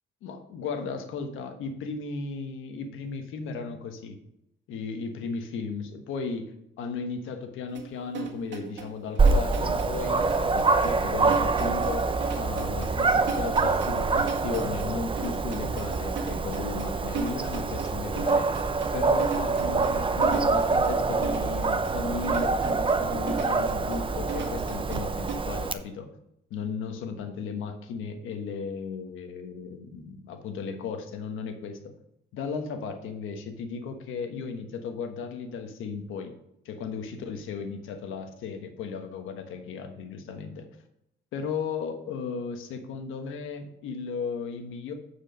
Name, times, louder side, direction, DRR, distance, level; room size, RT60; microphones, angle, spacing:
voice 1, 0.2-4.2 4.7-18.5 18.9-26.1 26.5-31.9 32.3-36.3 36.6-40.7 41.3-44.9, left 5 dB, 85° left, 6 dB, 1.3 m, -35 dB
sound 1, 7.7-25.3, right 5 dB, 65° right, 1.7 m, -38 dB
Dog, 9.2-25.7, right 4 dB, 25° right, 0.6 m, -26 dB
9.1 x 4.9 x 5.2 m, 0.79 s
cardioid pair, 90°, 20 cm